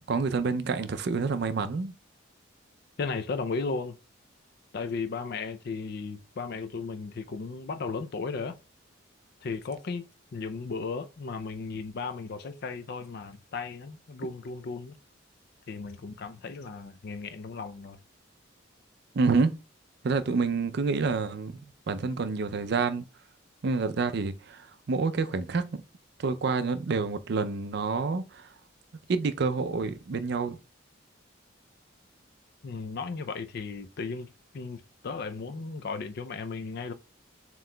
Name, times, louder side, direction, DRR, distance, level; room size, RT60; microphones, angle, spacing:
voice 1, 0.1-1.9 19.1-19.5 20.0-21.6 21.9-23.0 23.6-24.6 24.9-25.8 26.2-28.2 29.1-30.6, right 4 dB, 55° right, 0.4 m, -28 dB
voice 2, 3.0-4.0 4.7-8.6 9.4-10.1 10.3-15.0 15.7-18.0 32.6-34.3 34.5-36.9, left 4 dB, 55° left, 0.4 m, -35 dB
7.4 x 2.9 x 2.2 m
head